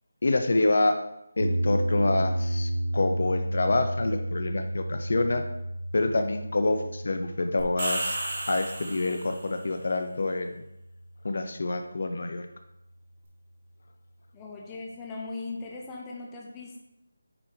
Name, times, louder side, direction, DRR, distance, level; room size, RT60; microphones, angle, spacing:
voice 1, 0.2-1.0 1.4-5.4 5.9-8.2 8.5-10.5 11.2-12.5, left 2 dB, 55° left, 7 dB, 0.6 m, -27 dB
sound 1, 1.4-11.6, right 1 dB, 85° right, 0.5 m, -32 dB
sound 2, 7.6-9.5, right 1 dB, 35° right, 1.8 m, -33 dB
voice 2, 14.3-16.8, left 3 dB, 10° left, -1 dB, 0.8 m, -39 dB
8.6 x 3.5 x 4.9 m, 0.88 s
figure-of-eight pair, 170°, 0 cm